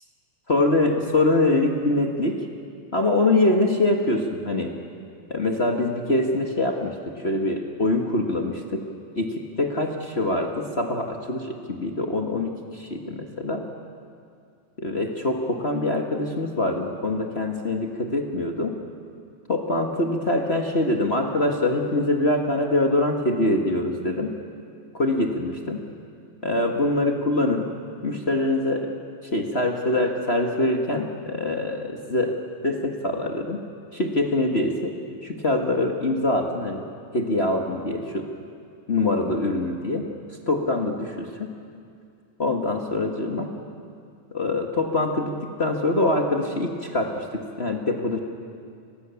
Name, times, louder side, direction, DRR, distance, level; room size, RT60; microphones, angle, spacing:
voice 1, 0.5-2.4 2.9-4.7 5.3-8.8 9.2-13.7 14.8-18.8 19.5-24.3 24.9-25.8 26.4-27.7 28.0-28.9 29.3-32.4 32.6-33.6 33.9-35.0 35.2-36.8 37.1-38.3 38.9-40.1 40.5-41.5 42.4-43.5 44.3-48.2, left 2 dB, 35° left, 2 dB, 0.9 m, -24 dB
29.5 x 21.0 x 7.0 m, 2.4 s
omnidirectional pair, 3.5 m